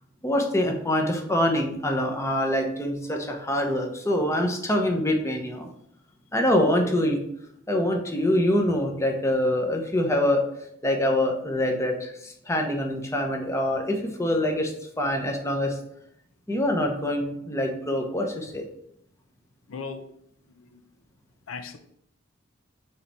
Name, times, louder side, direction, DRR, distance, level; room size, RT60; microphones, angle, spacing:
voice 1, 0.2-5.7 6.3-7.2 7.7-10.4 10.8-14.7 15.0-15.7 16.5-18.6, left 1 dB, 15° left, 2 dB, 0.9 m, -25 dB
voice 2, 19.7-20.0 20.6-20.8 21.5-21.8, left 5 dB, 80° left, 8 dB, 0.6 m, -37 dB
6.7 x 3.4 x 4.3 m, 0.72 s
head